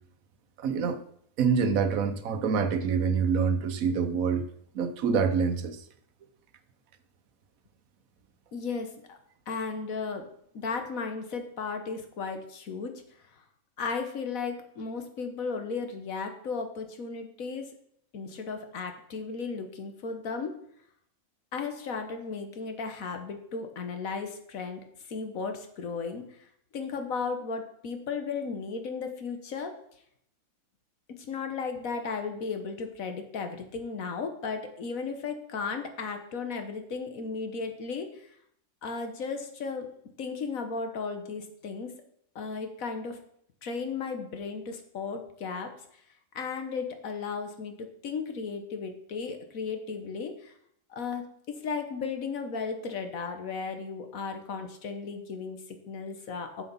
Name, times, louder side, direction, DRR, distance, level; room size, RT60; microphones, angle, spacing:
voice 1, 0.6-1.0 1.4-4.4 4.7-5.8, right 6 dB, 80° right, 10 dB, 1.2 m, -26 dB
voice 2, 8.5-9.2 9.5-10.3 10.5-13.0 13.8-17.7 18.1-20.6 21.5-24.8 25.1-26.4 26.7-29.8 31.1-38.3 38.8-39.9 40.2-42.0 42.3-43.2 43.6-45.7 46.3-47.7 48.0-50.5 50.9-56.6, left 5 dB, 75° left, 6 dB, 1.6 m, -35 dB
7.3 x 7.0 x 5.5 m, 0.69 s
omnidirectional pair, 1.4 m